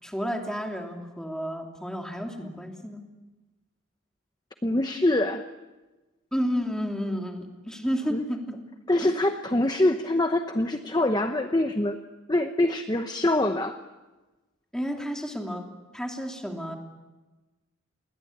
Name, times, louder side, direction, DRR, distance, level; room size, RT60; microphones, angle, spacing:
voice 1, 0.0-3.0 6.3-8.6 9.0-9.1 14.7-15.7 15.9-16.8, equal, 5° left, 2 dB, 2.9 m, -31 dB
voice 2, 4.6-5.5 8.1-8.2 8.9-12.0 12.3-13.8, left 1 dB, 20° left, 7 dB, 0.9 m, -24 dB
29.0 x 21.5 x 8.6 m, 1.2 s
head